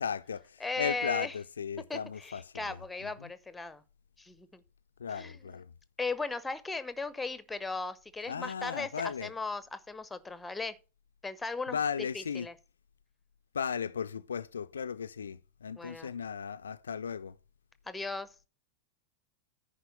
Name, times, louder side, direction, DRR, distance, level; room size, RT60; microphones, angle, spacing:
voice 1, 0.0-2.4 3.2-3.3 5.0-5.7 8.3-9.3 11.7-12.5 13.5-17.3, left 7 dB, 70° left, 0.4 m, -36 dB
voice 2, 0.6-1.3 1.9-3.8 4.2-4.6 5.1-5.4 6.0-10.7 11.2-12.5 15.8-16.1 17.9-18.3, left 3 dB, 10° left, 0.8 m, -37 dB
10.0 x 4.6 x 6.4 m
figure-of-eight pair, 90°, 0 cm